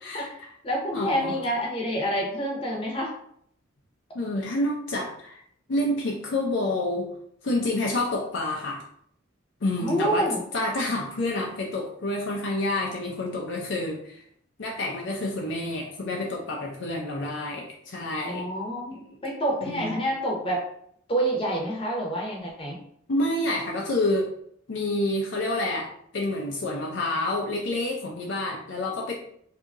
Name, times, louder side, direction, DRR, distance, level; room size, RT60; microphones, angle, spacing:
voice 1, 0.0-0.5 0.9-1.4 4.1-5.4 5.7-7.1 7.4-8.8 9.6-10.3 10.5-14.2 14.6-18.5 18.9-19.2 19.7-20.0 23.1-24.3 24.7-29.1, left 1 dB, 60° left, -1 dB, 0.5 m, -28 dB
voice 2, 0.6-3.1 9.8-10.4 18.2-20.6 21.1-22.8, right 1 dB, 25° left, -2 dB, 0.8 m, -27 dB
2.8 x 2.5 x 3.6 m, 0.68 s
head